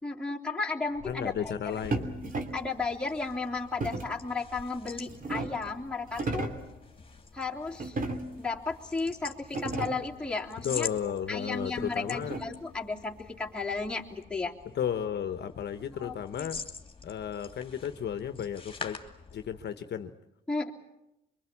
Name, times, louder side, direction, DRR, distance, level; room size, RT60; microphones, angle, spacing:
voice 1, 0.0-1.3 2.5-6.5 7.3-8.0 8.4-10.9 11.3-14.5 15.9-16.5 20.5-20.7, left 3 dB, 5° left, -3 dB, 3.4 m, -34 dB
sound 1, 0.9-19.8, left 4 dB, 30° left, 2.9 m, -46 dB
voice 2, 1.1-2.3 10.6-12.4 14.7-16.6 17.0-19.0 19.3-20.1, left 8 dB, 55° left, 9 dB, 1.1 m, -34 dB
sound 2, 1.9-2.7 3.8-4.2 4.9-5.7 6.1-6.7 7.8-8.5 9.1-9.2 9.4-10.2 11.5-12.7, right 2 dB, 45° right, 3.0 m, -35 dB
24.5 x 24.0 x 8.6 m, 0.90 s
cardioid pair, 90°, 20 cm